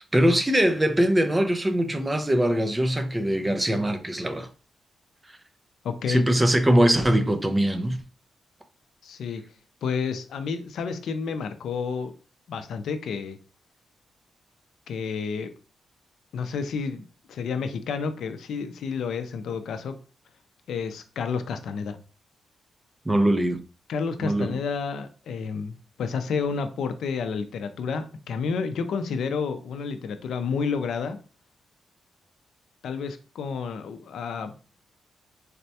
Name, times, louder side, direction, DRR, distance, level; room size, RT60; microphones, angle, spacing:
voice 1, 0.0-4.5 6.1-8.0 23.1-23.6 24.2-24.6, right 1 dB, 10° right, 0.4 m, -22 dB
voice 2, 5.8-6.2 9.0-9.4 9.8-12.1 12.5-13.4 14.9-15.5 16.3-20.0 20.7-22.0 23.9-31.2 32.8-34.6, left 5 dB, 75° left, 0.4 m, -30 dB
4.1 x 2.2 x 2.7 m
wide cardioid pair, 150°, 0 cm